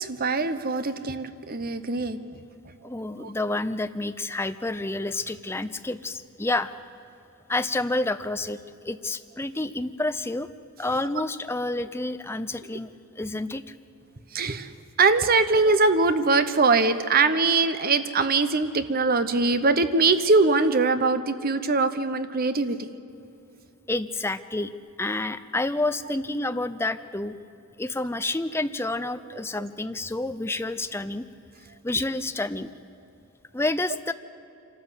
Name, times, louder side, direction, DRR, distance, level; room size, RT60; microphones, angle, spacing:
voice 1, 0.0-2.2 3.2-3.3 14.3-14.7 15.0-22.9, right 3 dB, 40° right, 11 dB, 0.8 m, -22 dB
voice 2, 2.8-6.7 7.5-10.5 10.8-12.9 13.2-13.6 23.9-24.7 25.0-27.3 27.8-31.3 31.8-32.7 33.5-34.1, left 2 dB, 10° left, 11 dB, 0.5 m, -29 dB
26.0 x 13.0 x 8.3 m, 2.9 s
head